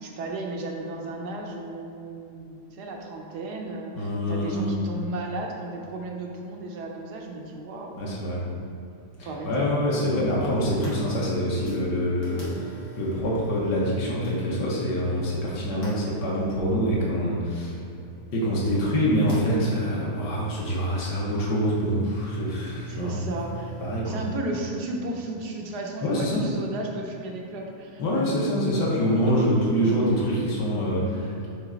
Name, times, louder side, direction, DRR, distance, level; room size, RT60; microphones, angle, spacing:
voice 1, 0.0-8.0 9.2-9.7 22.8-23.7 24.0-28.2 29.1-29.4, right 2 dB, 80° right, 0 dB, 1.3 m, -34 dB
voice 2, 4.0-4.7 8.0-8.4 9.2-17.7 18.3-23.2 23.8-24.2 26.0-26.5 28.0-31.5, equal, 90° left, -5 dB, 1.6 m, -25 dB
sound 1, 10.0-24.0, right 2 dB, 65° left, 2.1 m, -44 dB
6.0 x 3.3 x 5.0 m, 2.7 s
omnidirectional pair, 1.7 m